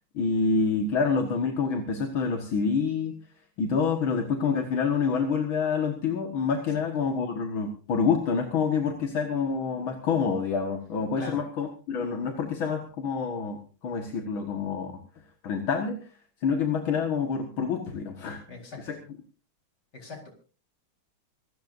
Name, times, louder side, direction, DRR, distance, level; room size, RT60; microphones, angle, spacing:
voice 1, 0.1-3.2 3.6-15.0 15.4-16.0 16.4-18.4 18.8-19.0, left 5 dB, 75° left, 4 dB, 2.5 m, -27 dB
voice 2, 18.5-18.9 19.9-20.3, left 3 dB, 50° left, 2 dB, 5.0 m, -41 dB
25.5 x 14.0 x 2.7 m, 0.35 s
omnidirectional pair, 2.2 m